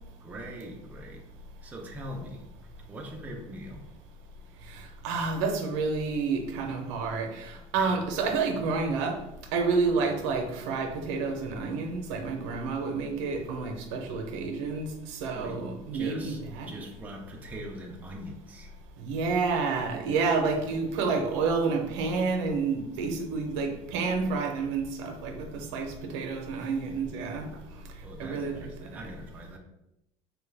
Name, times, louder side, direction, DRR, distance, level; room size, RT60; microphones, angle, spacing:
voice 1, 0.2-1.2 1.6-2.5 2.9-3.9 7.7-7.9 9.9-10.2 12.5-12.8 15.3-15.6 15.9-18.7 20.6-20.7 28.0-29.6, right 1 dB, 10° right, 0 dB, 0.4 m, -42 dB
voice 2, 5.0-9.2 9.5-14.9 15.2-16.7 19.0-27.5 28.2-28.7, right 4 dB, 90° right, 4 dB, 0.6 m, -29 dB
3.0 x 2.2 x 3.3 m, 0.88 s
cardioid pair, 155°, 15 cm